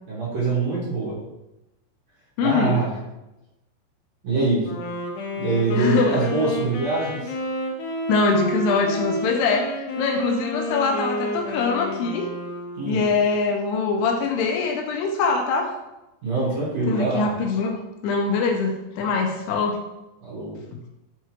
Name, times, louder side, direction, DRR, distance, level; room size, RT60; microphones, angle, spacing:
voice 1, 0.1-1.2 2.4-2.9 4.2-4.6 5.4-7.3 12.8-13.0 16.2-17.3 20.2-20.6, right 3 dB, 55° right, -6 dB, 2.2 m, -24 dB
voice 2, 2.4-2.8 5.8-6.2 8.1-12.3 12.9-15.7 16.9-19.8, left 4 dB, 90° left, 3 dB, 2.7 m, -23 dB
Wind instrument woodwind instrument, 4.6-13.3, equal, 70° left, 2.1 m, -30 dB
6.5 x 5.0 x 3.0 m, 0.96 s
omnidirectional pair, 4.7 m